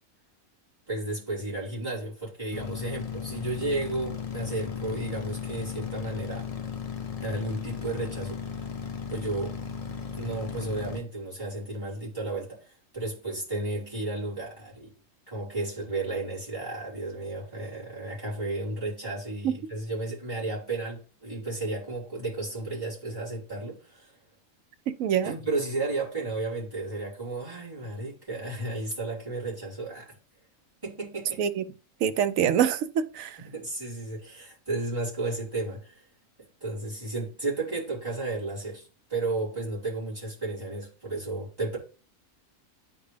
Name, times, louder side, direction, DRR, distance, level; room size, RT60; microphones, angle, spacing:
voice 1, 0.9-6.4 7.2-8.4 9.1-9.6 10.1-14.9 15.3-24.1 25.2-30.1 30.8-31.4 33.5-36.0 36.6-41.8, right 2 dB, 15° right, 4.2 m, -33 dB
sound 1, 2.5-11.0, left 6 dB, 45° left, 0.5 m, -36 dB
voice 2, 24.9-25.3 31.4-31.6 32.0-33.4, right 9 dB, 70° right, 0.9 m, -25 dB
9.8 x 3.6 x 3.3 m
omnidirectional pair, 1.5 m